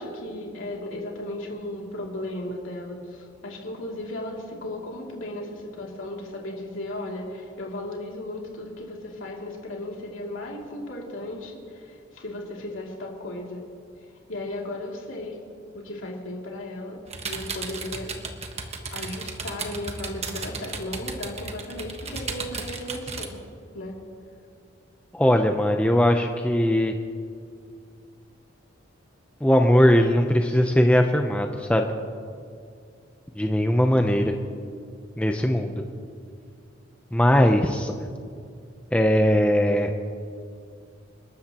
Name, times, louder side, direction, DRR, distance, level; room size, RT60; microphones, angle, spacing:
voice 1, 0.0-13.6 14.3-15.4 15.7-18.1 18.9-23.3 23.7-23.9, left 1 dB, 75° left, -2 dB, 2.7 m, -35 dB
sound 1, 17.1-23.3, right 4 dB, 35° right, 1.3 m, -34 dB
voice 2, 25.1-27.0 29.4-31.9 33.4-34.3 35.2-35.7 37.1-37.9 38.9-39.9, equal, 5° left, 4 dB, 0.6 m, -20 dB
29.0 x 13.0 x 3.0 m, 2.3 s
head